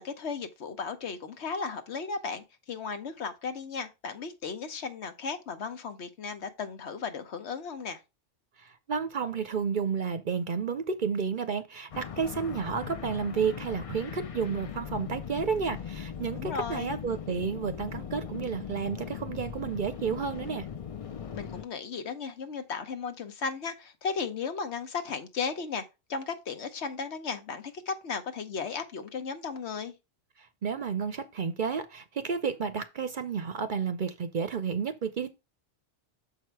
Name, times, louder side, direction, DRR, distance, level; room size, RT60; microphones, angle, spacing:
voice 1, 0.0-8.0 16.3-17.0 21.3-25.8 26.1-29.9, left 5 dB, 70° left, 1.2 m, -35 dB
voice 2, 8.6-20.7 30.4-35.3, right 6 dB, 50° right, 0.7 m, -31 dB
sound 1, 11.9-21.6, left 8 dB, 50° left, 0.4 m, -39 dB
6.7 x 4.7 x 4.5 m
omnidirectional pair, 1.2 m